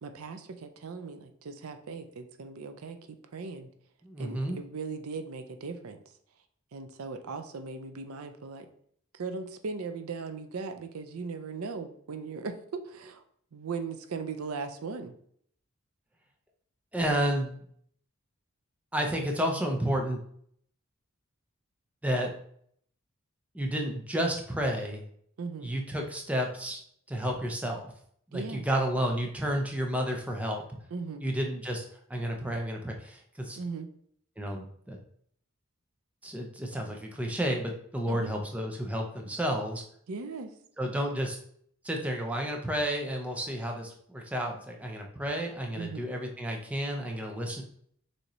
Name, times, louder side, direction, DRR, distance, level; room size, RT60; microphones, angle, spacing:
voice 1, 0.0-3.7 4.2-6.0 6.7-8.7 9.1-13.2 13.5-15.1 25.4-25.7 28.3-28.7 30.9-31.3 33.6-33.9 38.1-38.3 40.1-40.5 45.8-46.0, right 4 dB, 85° right, 8 dB, 0.5 m, -38 dB
voice 2, 4.0-4.6 16.9-17.6 18.9-20.2 22.0-22.3 23.5-25.0 25.6-26.8 27.1-27.9 28.3-30.8 31.2-31.8 32.1-33.6 34.4-35.0 36.2-39.8 40.8-41.4 41.8-47.6, equal, 5° right, 2 dB, 0.5 m, -31 dB
6.4 x 2.7 x 3.0 m, 0.64 s
head